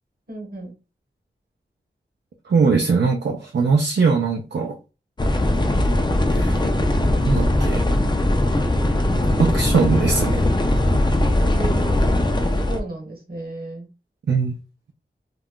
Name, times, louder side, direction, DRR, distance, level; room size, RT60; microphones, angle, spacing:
voice 1, 0.3-0.7 11.5-13.9, right 2 dB, 55° right, 1.1 m, -34 dB
voice 2, 2.5-4.8 6.3-6.6 7.2-7.8 9.4-10.5 14.3-14.6, right 5 dB, 75° right, 0.5 m, -20 dB
sound 1, 5.2-12.8, left 1 dB, 25° left, 0.4 m, -20 dB
2.4 x 2.1 x 3.6 m
wide cardioid pair, 60°, 18 cm